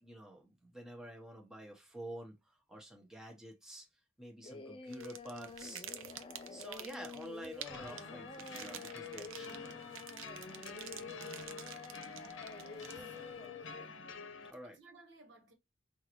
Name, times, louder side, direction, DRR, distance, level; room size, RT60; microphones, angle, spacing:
voice 1, 0.0-3.9 4.2-5.8 6.5-9.8 14.5-14.8, right 1 dB, 5° right, 0.9 m, -49 dB
Singing, 4.4-13.9, left 5 dB, 25° left, 0.3 m, -49 dB
sound 1, 4.9-13.4, right 10 dB, 90° right, 0.6 m, -50 dB
sound 2, 7.7-14.5, left 4 dB, 75° left, 0.8 m, -49 dB
voice 2, 10.5-12.1 12.4-13.9 14.6-15.5, right 2 dB, 65° right, 1.2 m, -61 dB
5.4 x 2.6 x 2.9 m
head